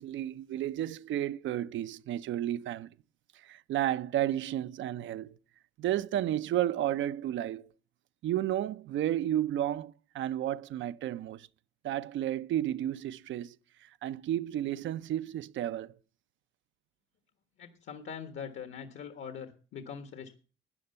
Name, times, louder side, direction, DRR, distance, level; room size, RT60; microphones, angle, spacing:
voice 1, 0.0-2.9 3.4-5.4 5.8-7.7 8.2-11.5 11.8-13.6 13.8-16.0, right 12 dB, 75° right, 0.5 m, -32 dB
voice 2, 17.6-20.4, left 7 dB, 75° left, 1.5 m, -42 dB
12.5 x 9.5 x 5.5 m
cardioid pair, 90°, 20 cm